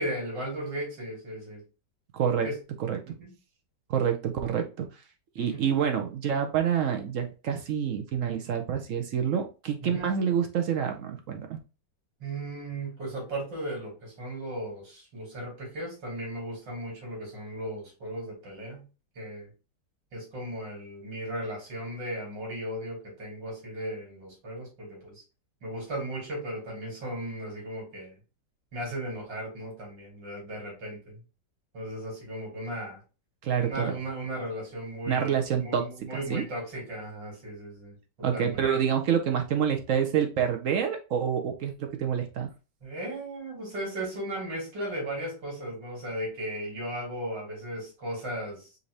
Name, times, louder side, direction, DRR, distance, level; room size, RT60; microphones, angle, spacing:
voice 1, 0.0-1.6 2.4-2.6 3.0-3.3 5.4-5.6 9.8-10.1 12.2-18.9 19.1-19.5 20.1-25.2 25.6-28.1 28.7-31.2 31.7-33.0 33.6-38.0 38.3-38.6 42.8-48.7, right 1 dB, 85° right, -3 dB, 3.2 m, -36 dB
voice 2, 2.1-2.5 2.8-3.0 3.9-4.9 5.4-11.6 33.4-33.9 35.1-35.8 36.1-36.4 38.2-42.5, right 8 dB, 60° right, 5 dB, 0.8 m, -27 dB
5.2 x 2.7 x 3.2 m, 0.31 s
omnidirectional pair, 1.9 m